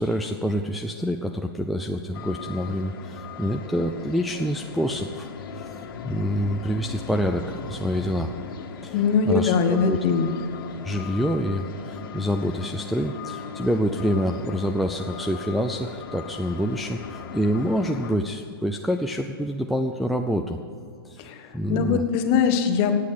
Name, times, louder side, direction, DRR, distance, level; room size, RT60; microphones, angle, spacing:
voice 1, 0.0-5.3 5.6-5.7 6.0-8.3 8.8-10.0 10.8-20.6 21.0-21.3 21.5-22.0, equal, ahead, 2 dB, 0.3 m, -27 dB
sound 1, 2.1-18.2, left 5 dB, 60° left, 1.7 m, -38 dB
voice 2, 8.9-10.3 21.2-21.4 21.7-23.0, left 6 dB, 35° left, 7 dB, 1.2 m, -21 dB
17.0 x 8.5 x 6.7 m, 2.5 s
hypercardioid pair, 155°, 13 cm